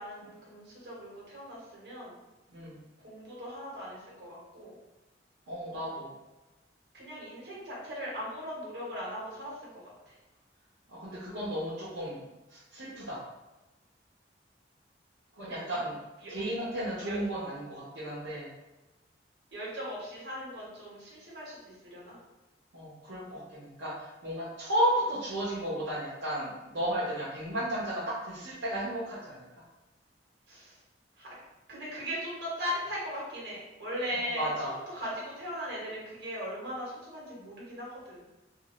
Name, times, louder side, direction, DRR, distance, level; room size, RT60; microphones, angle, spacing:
voice 1, 0.0-2.2 3.0-4.8 6.9-10.1 15.4-15.8 16.2-16.3 17.0-17.2 19.5-22.2 30.5-30.8 31.2-31.3 31.7-38.3, equal, 60° right, -5 dB, 1.1 m, -39 dB
voice 2, 5.5-6.1 10.9-12.2 12.5-13.2 15.4-15.9 16.3-18.5 22.7-29.4 34.1-34.7, right 1 dB, 80° right, -8 dB, 0.8 m, -33 dB
2.6 x 2.4 x 3.0 m, 1.1 s
head